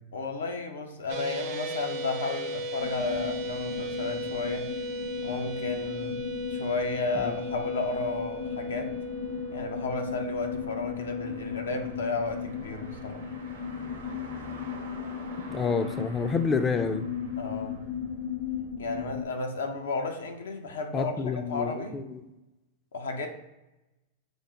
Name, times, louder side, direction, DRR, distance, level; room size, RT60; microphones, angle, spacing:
voice 1, 0.1-4.7 5.2-8.9 9.5-13.2 15.5-15.7 17.4-17.8 18.8-21.1 21.5-21.9 22.9-23.3, left 3 dB, 85° left, 4 dB, 0.6 m, -33 dB
sound 1, 1.1-13.4, right 1 dB, 50° right, 0.5 m, -37 dB
sound 2, 2.8-19.2, left 7 dB, 50° left, 0.7 m, -37 dB
sound 3, 8.3-18.6, right 3 dB, 90° right, 0.7 m, -48 dB
voice 2, 15.5-17.1 20.9-22.2, left 5 dB, 25° left, 10 dB, 0.3 m, -28 dB
5.2 x 2.0 x 3.6 m, 0.99 s
hypercardioid pair, 110°, 0 cm